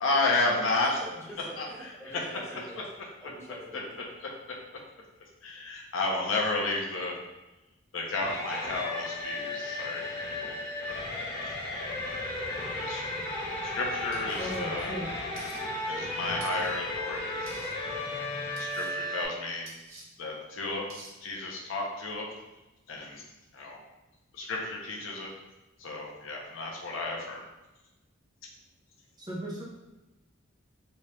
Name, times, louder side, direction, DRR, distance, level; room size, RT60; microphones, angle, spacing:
voice 1, 0.0-1.0 1.6-2.3 3.7-4.3 5.4-7.1 7.9-10.0 12.7-13.0 13.6-14.9 15.9-17.7 18.5-19.7 20.2-20.8 21.2-22.3 22.9-23.2 23.5-23.8 24.3-25.3 25.8-27.4, left 2 dB, 75° left, -1 dB, 0.7 m, -32 dB
voice 2, 1.0-2.8 3.2-4.0, equal, 15° left, -7 dB, 1.0 m, -45 dB
sound 1, 8.2-19.2, left 1 dB, 40° left, 1.1 m, -34 dB
sound 2, 14.1-14.6 15.4-15.6 16.4-16.7 17.5-17.7 18.6-18.9 19.7-20.0 20.9-21.1, right 2 dB, 85° right, 0.9 m, -48 dB
voice 3, 14.4-15.1 29.2-29.6, right 1 dB, 20° right, -4 dB, 0.6 m, -36 dB
3.2 x 2.8 x 3.1 m, 1.0 s
head